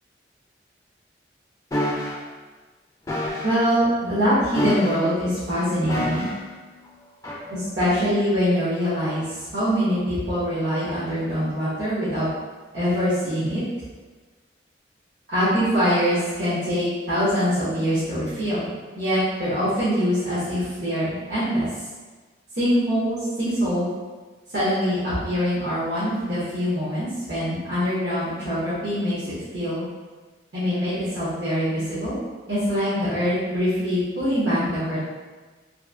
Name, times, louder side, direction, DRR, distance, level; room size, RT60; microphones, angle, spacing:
sound 1, 1.7-2.2 3.1-3.6 4.5-5.2 5.9-6.5 7.2-7.4, left 1 dB, 20° left, 0.4 m, -27 dB
voice 1, 3.4-6.3 7.5-12.3 12.7-13.6 15.3-21.7 22.5-23.9 24.5-29.8 30.5-32.2 32.5-35.0, equal, 75° right, -12 dB, 0.9 m, -24 dB
2.9 x 2.5 x 2.4 m, 1.3 s
head